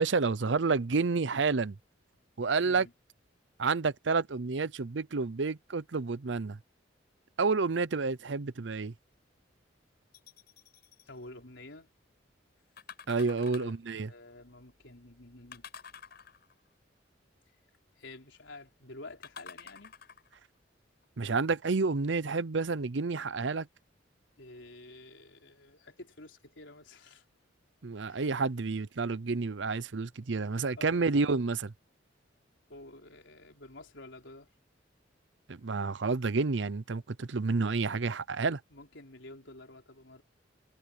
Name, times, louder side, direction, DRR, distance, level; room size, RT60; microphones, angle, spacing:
voice 1, 0.0-1.8 2.4-2.9 3.6-6.6 7.4-8.9 13.1-14.1 21.2-23.7 27.8-31.7 35.5-38.6, right 4 dB, 70° right, 0.7 m, -29 dB
sound 1, 10.1-11.1 12.8-13.9 15.5-16.7 19.2-20.4 21.0-21.1, left 7 dB, 55° left, 6.0 m, -49 dB
voice 2, 11.1-11.9 13.6-13.7 14.1-15.6 18.0-19.9 24.4-27.2 28.1-28.3 30.8-31.1 32.7-34.5 38.7-40.2, left 2 dB, 70° left, 4.5 m, -50 dB
head